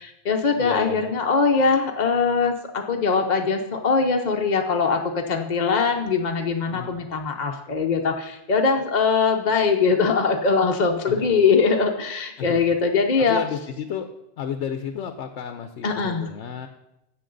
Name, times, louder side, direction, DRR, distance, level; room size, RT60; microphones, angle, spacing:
voice 1, 0.0-13.4 15.8-16.3, left 5 dB, 45° left, 3 dB, 0.8 m, -22 dB
voice 2, 0.6-1.1 6.7-7.0 11.1-11.3 12.4-12.6 13.2-14.1 14.4-16.7, left 8 dB, 85° left, 7 dB, 1.0 m, -32 dB
15.0 x 6.2 x 3.9 m, 0.88 s
omnidirectional pair, 1.2 m